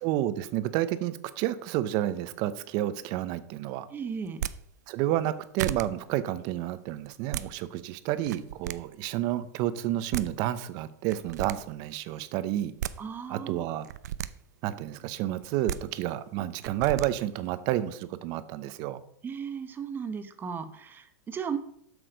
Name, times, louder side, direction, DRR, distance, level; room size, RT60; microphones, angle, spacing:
voice 1, 0.0-3.9 4.9-12.7 13.3-13.9 14.6-19.0, right 13 dB, 50° right, 14 dB, 0.7 m, -30 dB
voice 2, 3.9-4.4 13.0-13.7 19.2-21.6, right 6 dB, 20° right, 9 dB, 0.9 m, -36 dB
sound 1, 4.3-4.6 5.2-5.3 5.6-5.9 7.1-7.5 8.2-8.8 9.8-9.9 10.1-10.3 11.1-11.6 12.5-13.0 13.8-14.3 15.4-15.8 16.6-17.1, right 11 dB, 80° right, 0.5 m, -33 dB
7.8 x 6.1 x 5.2 m, 0.67 s
supercardioid pair, 125°, 9 cm